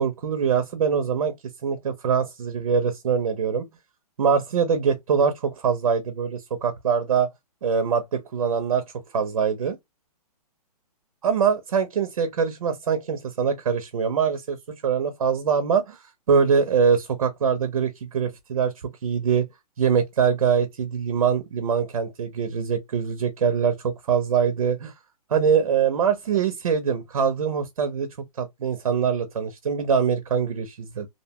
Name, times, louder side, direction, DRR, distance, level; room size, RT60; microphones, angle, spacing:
voice 1, 0.0-1.3 1.6-3.7 4.2-7.3 7.6-8.8 9.1-9.8 11.2-14.6 14.8-16.0 16.3-18.7 19.0-19.4 19.8-24.9 25.3-28.1 28.4-31.1, right 6 dB, 60° right, 0.6 m, -23 dB
2.6 x 2.1 x 2.7 m
hypercardioid pair, 175°, 20 cm